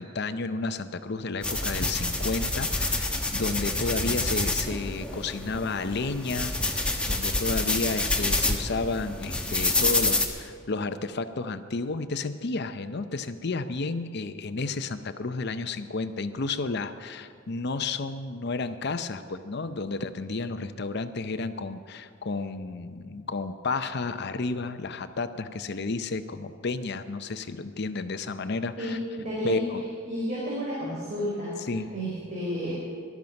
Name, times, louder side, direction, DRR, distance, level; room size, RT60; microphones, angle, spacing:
voice 1, 0.0-29.0 29.4-29.8 31.7-31.9, left 3 dB, 55° left, 10 dB, 0.7 m, -32 dB
sound 1, 1.4-10.3, left 2 dB, 5° left, 1.1 m, -28 dB
voice 2, 28.8-29.6 30.1-31.5 31.9-32.7, equal, 35° right, -7 dB, 4.1 m, -31 dB
19.0 x 12.5 x 5.3 m, 2.1 s
head